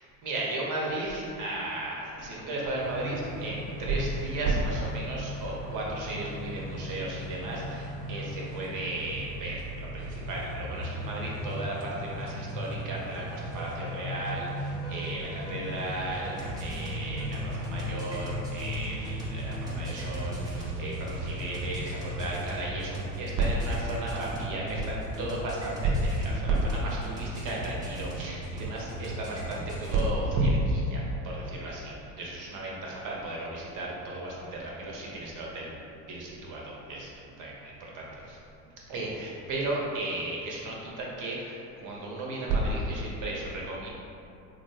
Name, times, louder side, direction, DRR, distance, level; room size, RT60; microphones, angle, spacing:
voice 1, 0.0-35.8 36.0-38.4 38.9-43.9, right 2 dB, 40° right, -3 dB, 0.9 m, -33 dB
sound 1, 2.8-22.6, equal, 70° right, 0.8 m, -38 dB
sound 2, 13.5-30.2, right 1 dB, 10° right, 0.7 m, -38 dB
3.7 x 2.1 x 3.3 m, 2.7 s
hypercardioid pair, 75°, 49 cm